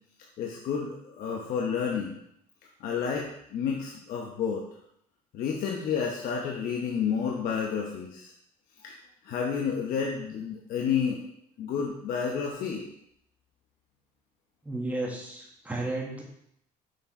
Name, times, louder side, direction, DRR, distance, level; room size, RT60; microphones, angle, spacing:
voice 1, 0.4-2.1 2.8-4.6 5.3-8.3 8.8-8.9 9.2-11.2 11.6-12.9, left 6 dB, 65° left, 0 dB, 1.0 m, -30 dB
voice 2, 14.6-16.2, right 2 dB, 10° right, -2 dB, 1.7 m, -33 dB
6.3 x 4.6 x 4.4 m, 0.73 s
cardioid pair, 120°, 16 cm